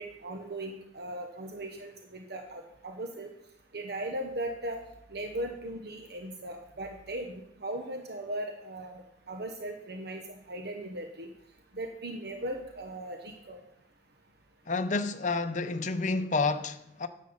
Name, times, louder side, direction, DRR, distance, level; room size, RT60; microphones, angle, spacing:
voice 1, 0.0-3.3 3.7-4.8 5.1-9.0 9.3-11.3 11.7-13.6, right 1 dB, 60° right, 1.1 m, -38 dB
voice 2, 14.7-17.1, left 3 dB, 40° left, 0.7 m, -29 dB
10.5 x 7.4 x 7.2 m
head